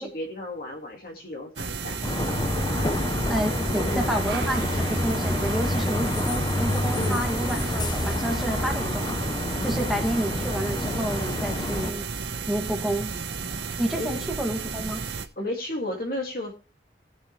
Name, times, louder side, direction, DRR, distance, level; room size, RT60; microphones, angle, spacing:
voice 1, 0.0-2.0 3.8-4.2 6.9-7.2 9.5-10.0 14.0-14.2 15.1-16.5, left 1 dB, 50° left, 1 dB, 2.2 m, -34 dB
sound 1, 1.6-15.3, right 5 dB, 70° right, 1.0 m, -33 dB
sound 2, 2.0-11.9, left 1 dB, 25° left, 0.7 m, -28 dB
voice 2, 3.3-9.1 9.6-12.1 12.5-13.1 13.8-15.0, right 1 dB, ahead, 1 dB, 1.9 m, -29 dB
18.5 x 6.2 x 3.2 m, 0.32 s
head